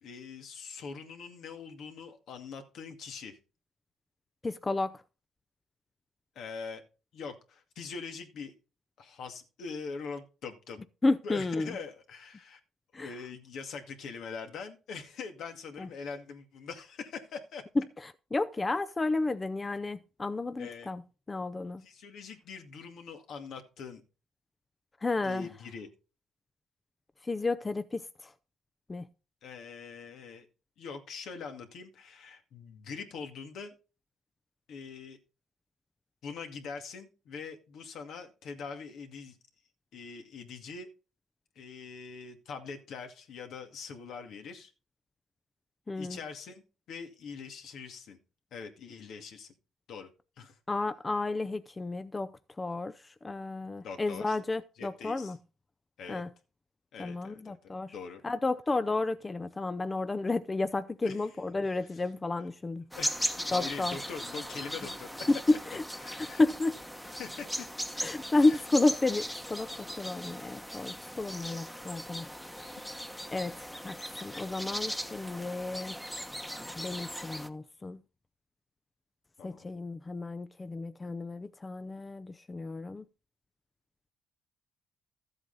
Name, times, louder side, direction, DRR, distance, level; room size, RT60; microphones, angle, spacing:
voice 1, 0.0-3.4 6.4-6.8 7.1-8.5 9.0-10.8 11.2-12.6 12.9-17.6 20.6-20.9 21.8-24.0 25.2-25.9 29.4-30.5 30.8-33.7 34.7-35.2 36.2-39.4 39.9-40.9 41.6-44.7 46.0-46.6 46.9-48.2 48.5-49.5 49.9-50.1 50.4-50.6 53.8-54.4 54.8-55.3 56.0-56.2 56.9-58.2 61.0-61.3 61.6-62.0 62.4-62.5 62.9-65.3 66.0-66.4 67.0-67.8 68.4-68.6 79.4-79.7, left 5 dB, 70° left, 2.2 m, -43 dB
voice 2, 4.4-5.0 11.0-11.8 12.9-13.1 15.8-15.9 18.0-21.0 21.3-21.8 25.0-25.5 27.2-28.3 28.9-29.0 45.9-46.2 50.7-52.3 52.6-55.4 56.1-56.3 57.0-57.9 58.2-62.9 63.5-64.0 65.3-65.4 65.7-65.8 66.2-66.8 68.0-72.3 73.3-76.0 76.7-78.0 79.4-83.0, left 2 dB, 25° left, 0.6 m, -32 dB
sound 1, 62.9-77.5, equal, 5° left, 1.2 m, -38 dB
13.5 x 8.0 x 4.0 m
cardioid pair, 90°, 0 cm